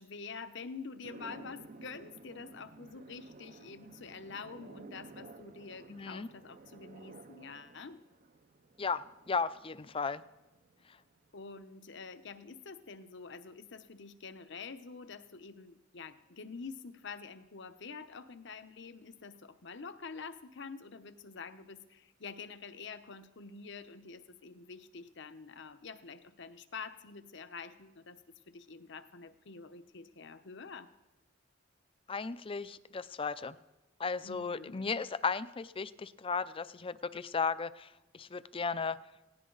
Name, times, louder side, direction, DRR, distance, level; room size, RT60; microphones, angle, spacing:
voice 1, 0.0-8.0 11.3-28.2 28.5-30.9 34.2-34.7, left 5 dB, 65° left, 11 dB, 0.9 m, -47 dB
sound 1, 1.0-11.4, right 3 dB, 45° right, 0.6 m, -54 dB
voice 2, 5.9-6.3 8.8-10.2 32.1-33.6 34.0-39.0, left 5 dB, 30° left, 16 dB, 0.5 m, -35 dB
18.5 x 17.5 x 4.0 m, 1.0 s
head